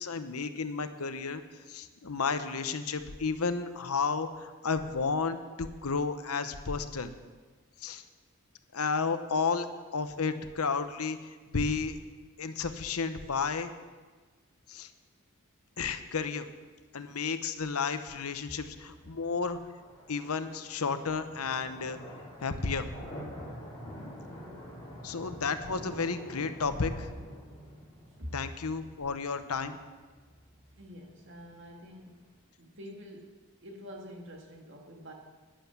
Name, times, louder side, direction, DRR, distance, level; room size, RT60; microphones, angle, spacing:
voice 1, 0.0-1.4 1.7-7.1 7.8-8.0 8.7-9.7 9.9-12.0 12.4-13.7 14.7-14.9 15.8-16.5 16.9-19.6 20.1-22.0 22.4-22.9 25.0-27.1 28.3-29.8, left 5 dB, 85° left, 10 dB, 0.9 m, -32 dB
sound 1, 18.5-32.4, equal, 20° left, 4.8 m, -47 dB
voice 2, 30.8-32.3 32.6-35.1, equal, 55° right, 1 dB, 2.1 m, -46 dB
11.5 x 10.0 x 7.2 m, 1.4 s
head